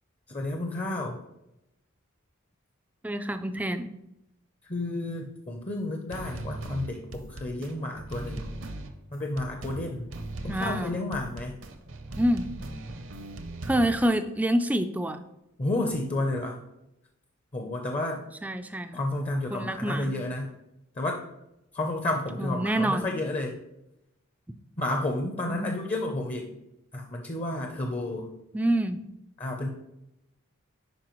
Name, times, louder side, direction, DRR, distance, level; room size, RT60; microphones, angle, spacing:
voice 1, 0.3-1.2 4.7-8.5 9.1-10.1 10.4-11.5 15.6-16.6 17.5-18.2 18.9-20.5 21.0-21.2 21.7-23.6 24.8-26.6 26.9-28.3 29.4-29.7, left 2 dB, 30° left, 2 dB, 0.6 m, -31 dB
voice 2, 3.0-3.9 10.5-10.9 12.2-12.5 13.6-15.2 18.4-19.0 19.5-20.1 22.4-23.2 25.5-25.7 28.5-29.0, right 1 dB, 5° right, 8 dB, 0.3 m, -27 dB
sound 1, 6.1-14.1, right 2 dB, 55° right, 0.7 m, -39 dB
10.5 x 4.6 x 3.0 m, 0.87 s
head